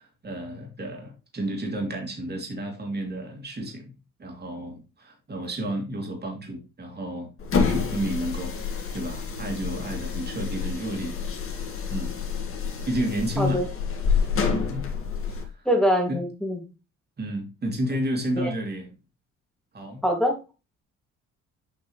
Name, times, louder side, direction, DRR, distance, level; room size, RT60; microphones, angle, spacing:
voice 1, 0.0-7.3 7.6-8.5 8.9-11.2 11.9-12.2 12.8-13.6 14.2-14.9 15.3-15.7 16.1-16.2 17.2-18.9 19.7-20.0, right 1 dB, 35° right, 2.8 m, -31 dB
sound 1, 7.4-15.5, left 5 dB, 45° left, 2.0 m, -28 dB
voice 2, 13.4-13.7 15.7-16.6 18.4-18.5 20.0-20.4, equal, ahead, 2.3 m, -23 dB
7.7 x 5.3 x 3.2 m
cardioid pair, 90°, 30 cm